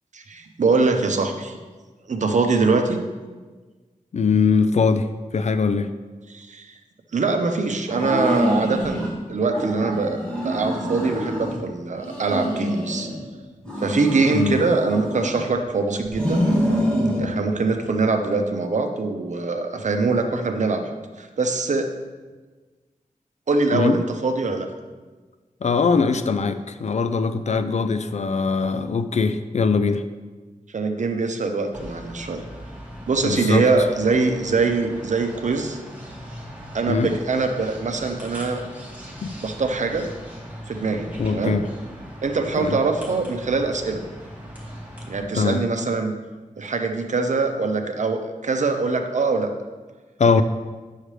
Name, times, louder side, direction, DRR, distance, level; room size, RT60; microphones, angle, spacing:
voice 1, 0.1-1.6 2.1-3.0 6.3-6.7 7.1-13.1 13.8-16.4 17.2-21.9 23.5-24.7 30.7-32.4 33.1-35.8 36.7-38.6 39.4-40.1 40.7-41.6 42.2-44.0 45.1-46.1 46.6-49.5, right 3 dB, 60° right, 5 dB, 0.7 m, -23 dB
voice 2, 4.1-5.9 14.3-14.6 23.7-24.0 25.6-30.0 33.2-33.6 36.9-37.1 39.2-39.3 41.2-41.6 42.6-42.8 45.3-45.6 50.2-50.4, left 5 dB, 55° left, 11 dB, 0.4 m, -21 dB
sound 1, 7.9-9.1 9.5-11.6 12.0-13.2 13.6-15.6 16.0-17.2, equal, 5° left, 1.9 m, -26 dB
sound 2, 31.7-45.2, equal, 10° right, 2.1 m, -39 dB
8.8 x 6.5 x 3.3 m, 1.3 s
wide cardioid pair, 110°, 14 cm